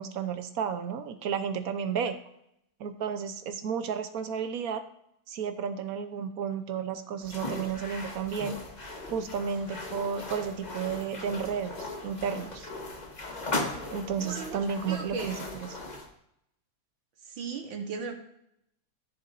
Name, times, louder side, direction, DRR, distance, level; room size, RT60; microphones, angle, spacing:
voice 1, 0.0-2.1 2.8-4.8 5.3-8.6 9.1-12.7 13.9-15.7, right 7 dB, 60° right, 9 dB, 1.0 m, -32 dB
sound 1, 7.2-16.1, left 2 dB, 25° left, 1.1 m, -38 dB
voice 2, 14.2-15.3 17.4-18.1, right 5 dB, 90° right, 4 dB, 2.0 m, -36 dB
14.5 x 7.0 x 2.6 m, 0.77 s
omnidirectional pair, 2.1 m